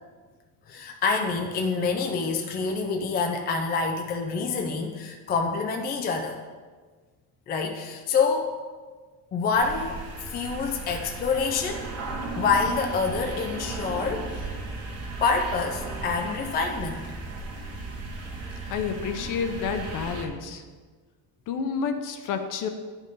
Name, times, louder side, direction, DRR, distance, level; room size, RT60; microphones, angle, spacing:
voice 1, 0.7-6.4 7.5-8.6 9.3-10.0 10.2-11.9 12.3-14.5 15.2-17.1, left 4 dB, 25° left, 3 dB, 0.4 m, -27 dB
sound 1, 9.5-20.2, right 3 dB, 40° right, 1.4 m, -36 dB
voice 2, 18.7-20.6 21.5-22.7, left 6 dB, 50° left, 8 dB, 0.8 m, -29 dB
10.5 x 5.4 x 3.8 m, 1.4 s
cardioid pair, 160°, 40 cm